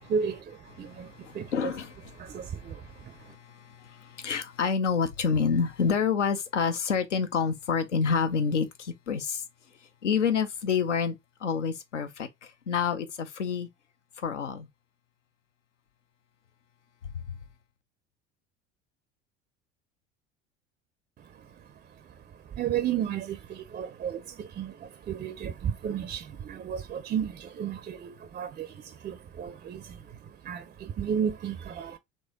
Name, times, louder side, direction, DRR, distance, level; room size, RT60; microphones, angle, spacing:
voice 1, 0.0-1.7 2.2-3.3 21.2-32.0, right 8 dB, 25° right, 0.4 m, -34 dB
voice 2, 0.8-9.4 10.0-11.1 11.4-13.7 14.2-14.7 17.1-17.2, left 6 dB, 80° left, 0.7 m, -29 dB
3.8 x 3.1 x 3.6 m
figure-of-eight pair, 65°, 36 cm